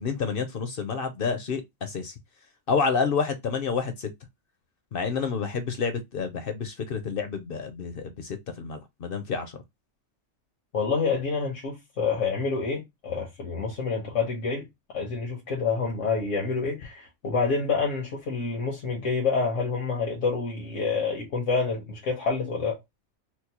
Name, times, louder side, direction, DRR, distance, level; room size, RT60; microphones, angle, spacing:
voice 1, 0.0-2.1 2.7-4.1 4.9-9.5, left 5 dB, 60° left, 0.7 m, -29 dB
voice 2, 10.7-14.7 14.9-22.8, left 4 dB, 85° left, 1.3 m, -28 dB
4.5 x 2.0 x 2.8 m
omnidirectional pair, 1.2 m